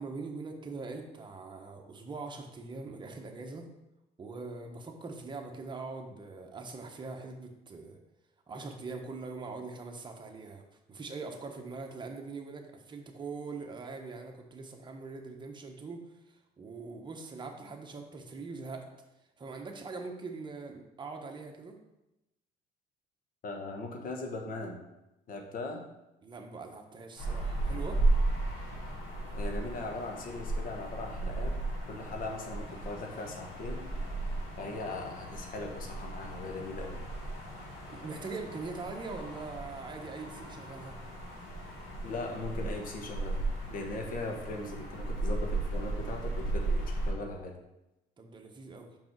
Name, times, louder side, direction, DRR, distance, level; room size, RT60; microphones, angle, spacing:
voice 1, 0.0-3.7 4.2-8.0 8.5-10.6 10.9-16.0 16.6-18.8 19.4-21.8 26.2-28.0 37.9-40.9 48.2-48.9, right 4 dB, 25° right, 2 dB, 1.1 m, -42 dB
voice 2, 23.4-24.8 25.3-25.8 29.3-31.6 31.9-33.9 34.6-37.0 42.0-43.4 43.7-47.5, left 2 dB, 55° left, 2 dB, 1.3 m, -39 dB
sound 1, 27.2-47.1, right 2 dB, 85° left, 2.4 m, -35 dB
5.7 x 5.3 x 4.6 m, 0.93 s
cardioid pair, 110°, 17 cm